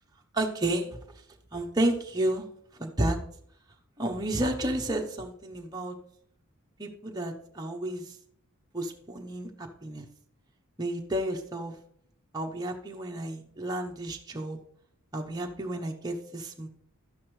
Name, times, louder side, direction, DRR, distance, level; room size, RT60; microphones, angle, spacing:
voice 1, 0.3-1.0 1.5-2.5 2.7-3.2 4.0-6.0 6.8-8.2 8.7-10.1 10.8-11.8 12.3-14.6 15.1-16.7, right 1 dB, 15° right, 1 dB, 0.8 m, -31 dB
12.0 x 9.5 x 3.2 m, 0.67 s
head